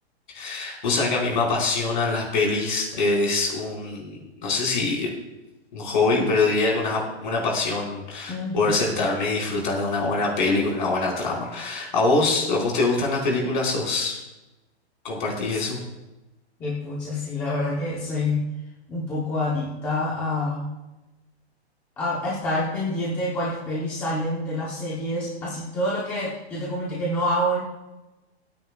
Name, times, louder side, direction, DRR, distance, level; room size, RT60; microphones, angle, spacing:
voice 1, 0.3-5.1 5.7-14.2 15.0-15.8, left 3 dB, 45° left, -2 dB, 4.6 m, -24 dB
voice 2, 8.3-8.8 15.5-15.6 16.6-18.5 18.9-20.7 22.0-27.6, left 1 dB, 5° left, -6 dB, 0.8 m, -27 dB
28.5 x 9.5 x 2.3 m, 1.0 s
hypercardioid pair, 180°, 33 cm